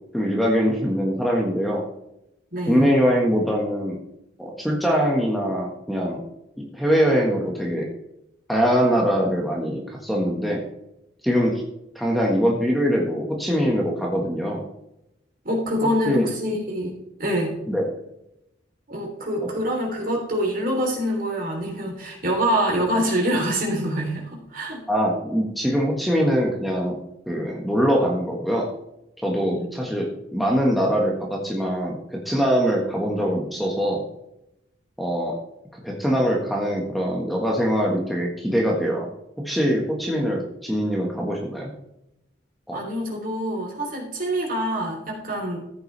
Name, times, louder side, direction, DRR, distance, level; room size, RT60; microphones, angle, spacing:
voice 1, 0.1-1.9 2.7-4.0 4.4-6.2 6.6-7.9 8.5-10.6 11.2-11.6 11.9-14.6 16.0-16.3 17.7-17.9 24.9-27.0 27.3-28.7 29.2-34.0 35.0-35.4 35.7-39.1 39.4-41.7 42.7-42.8, equal, ahead, -2 dB, 1.5 m, -23 dB
voice 2, 2.5-2.9 15.5-16.9 17.2-17.5 18.9-24.8 29.5-29.7 42.7-45.6, equal, 50° right, 0 dB, 3.3 m, -25 dB
14.0 x 8.1 x 3.3 m, 0.84 s
head